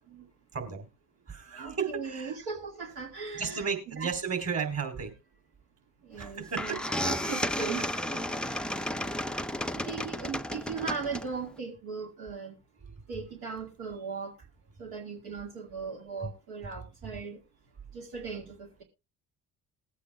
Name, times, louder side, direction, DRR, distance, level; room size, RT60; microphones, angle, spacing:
voice 1, 0.5-0.9 1.3-2.3 3.3-5.2 6.2-7.2 8.4-8.5 9.2-9.4 12.8-12.9 16.2-16.3, right 6 dB, 35° right, 3.6 m, -34 dB
voice 2, 1.5-4.1 6.0-6.8 7.2-7.9 8.4-8.7 9.9-12.5 13.1-14.4 14.8-17.4 17.9-18.8, right 5 dB, 70° right, 2.2 m, -38 dB
sound 1, 6.2-6.3 6.6-11.5, left 1 dB, ahead, 0.5 m, -33 dB
20.5 x 8.4 x 2.3 m
hypercardioid pair, 55°, 42 cm